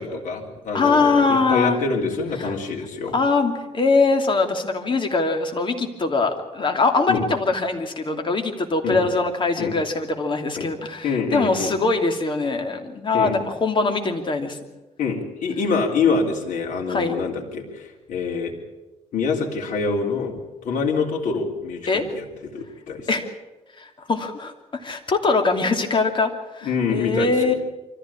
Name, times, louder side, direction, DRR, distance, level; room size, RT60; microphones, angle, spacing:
voice 1, 0.0-3.1 7.1-7.2 8.8-9.0 9.6-9.8 10.6-10.7 11.0-11.8 13.1-13.3 15.0-18.5 19.1-20.4 20.6-22.2 22.5-23.1 26.6-27.5, left 4 dB, 80° left, -1 dB, 3.6 m, -25 dB
voice 2, 0.7-1.8 2.4-2.5 3.1-14.6 16.9-17.2 21.9-22.0 23.1-23.3 23.8-24.5 24.8-27.5, left 3 dB, 40° left, 5 dB, 2.9 m, -22 dB
24.5 x 15.0 x 8.6 m, 1.1 s
cardioid pair, 110°, 13 cm